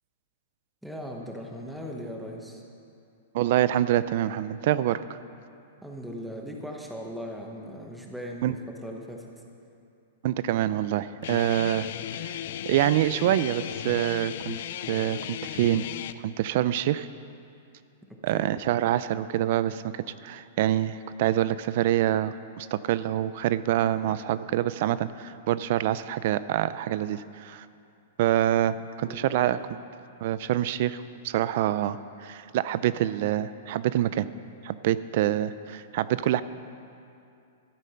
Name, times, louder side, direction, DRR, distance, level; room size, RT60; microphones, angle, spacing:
voice 1, 0.8-2.6 5.8-9.3 18.1-18.6 29.0-29.5, equal, ahead, 0 dB, 1.1 m, -39 dB
voice 2, 3.3-5.0 8.4-8.6 10.2-11.9 12.2-12.4 12.7-14.6 14.9-15.8 16.2-17.1 18.2-27.7 28.2-29.6 30.2-34.3 34.6-36.4, right 12 dB, 45° right, 15 dB, 0.4 m, -26 dB
Guitar, 11.2-16.1, left 11 dB, 55° left, 0.4 m, -35 dB
13.0 x 11.0 x 5.7 m, 2.5 s
supercardioid pair, 165°, 0 cm